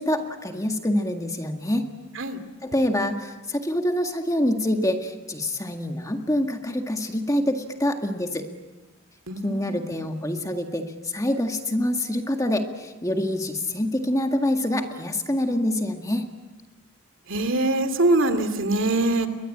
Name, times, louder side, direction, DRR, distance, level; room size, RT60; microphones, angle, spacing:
voice 1, 0.0-1.9 2.6-8.5 9.4-16.2, left 1 dB, 15° left, 4 dB, 1.8 m, -26 dB
voice 2, 9.3-9.9 17.3-19.3, right 2 dB, 60° right, 9 dB, 2.5 m, -23 dB
29.5 x 23.0 x 8.7 m, 1.1 s
head